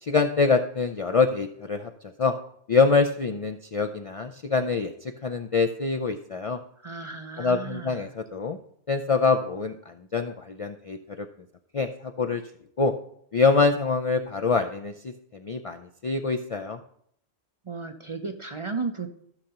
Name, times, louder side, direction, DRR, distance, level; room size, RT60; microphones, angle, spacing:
voice 1, 0.0-1.9 2.2-2.3 2.7-6.6 7.4-8.6 8.9-11.3 11.7-12.4 12.8-12.9 13.3-16.8, left 4 dB, 50° left, 5 dB, 0.4 m, -25 dB
voice 2, 6.8-8.1 17.6-19.1, right 4 dB, 40° right, 6 dB, 0.5 m, -34 dB
14.5 x 6.5 x 2.9 m, 0.68 s
omnidirectional pair, 1.1 m